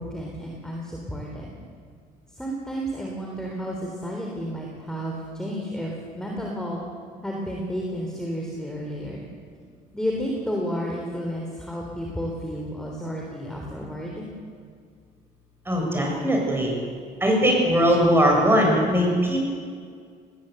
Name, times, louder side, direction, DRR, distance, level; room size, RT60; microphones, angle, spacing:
voice 1, 0.0-1.5 2.3-6.8 7.2-9.2 9.9-14.3, equal, 5° left, -1 dB, 3.7 m, -31 dB
voice 2, 15.7-16.7 17.2-19.5, equal, 15° right, -1 dB, 7.6 m, -20 dB
19.5 x 19.0 x 8.1 m, 2.1 s
cardioid pair, 110°, 17 cm